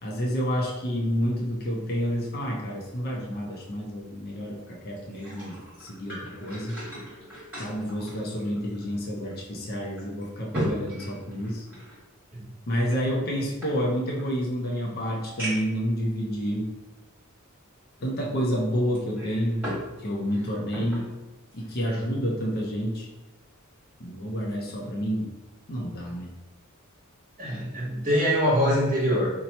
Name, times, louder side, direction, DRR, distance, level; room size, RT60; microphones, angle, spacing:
voice 1, 0.0-6.8 7.6-11.6 12.7-16.7 18.0-19.7 20.0-21.1 21.5-23.1 24.0-25.3 25.7-26.3, equal, 45° left, -1 dB, 0.6 m, -29 dB
sound 1, 5.0-9.0 9.3-9.4 10.0-12.0 12.8-14.3 14.8-14.9 15.4-15.8 16.6-16.7 18.9-19.9 20.2-21.1 21.5-21.7, equal, 10° right, 1.3 m, -37 dB
voice 2, 27.4-29.3, equal, 40° right, -7 dB, 1.2 m, -24 dB
2.9 x 2.2 x 4.0 m, 1.1 s
head